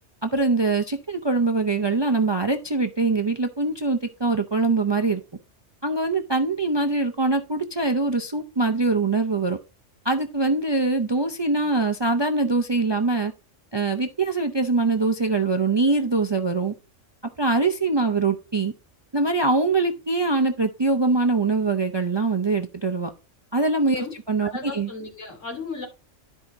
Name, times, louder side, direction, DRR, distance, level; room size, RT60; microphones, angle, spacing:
voice 1, 0.2-5.2 5.8-9.6 10.0-13.3 13.7-16.7 17.4-18.7 19.1-23.1 23.5-24.9, right 3 dB, 35° right, 0.4 m, -23 dB
voice 2, 24.4-25.9, left 3 dB, 85° left, 3.1 m, -35 dB
13.0 x 4.9 x 2.7 m
omnidirectional pair, 1.3 m